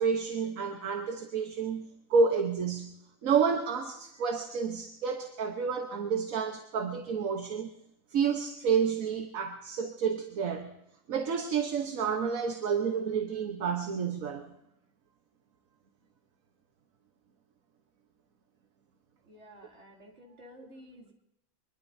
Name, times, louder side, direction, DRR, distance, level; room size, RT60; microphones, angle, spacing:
voice 1, 0.0-2.9 3.2-7.7 8.1-10.7 11.1-14.5, right 6 dB, 75° right, 5 dB, 1.5 m, -30 dB
voice 2, 19.2-21.1, equal, 55° right, -2 dB, 3.3 m, -52 dB
24.5 x 21.5 x 2.7 m, 0.82 s
omnidirectional pair, 1.4 m